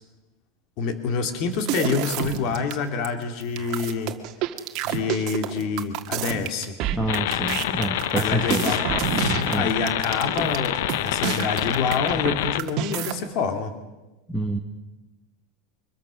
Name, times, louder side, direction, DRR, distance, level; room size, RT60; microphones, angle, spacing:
voice 1, 0.8-4.1 4.8-6.7 8.1-8.8 9.2-13.7, left 5 dB, 45° left, 7 dB, 2.7 m, -27 dB
sound 1, 1.5-2.7 3.0-3.1 3.4-12.3 12.6-13.1, right 11 dB, 40° right, 1.8 m, -28 dB
voice 2, 6.9-8.6 9.5-9.7 14.3-14.6, right 1 dB, ahead, 4 dB, 1.4 m, -27 dB
sound 2, 7.1-12.6, left 14 dB, 70° left, 0.7 m, -27 dB
24.0 x 21.5 x 6.4 m, 1.1 s
supercardioid pair, 155°, 0 cm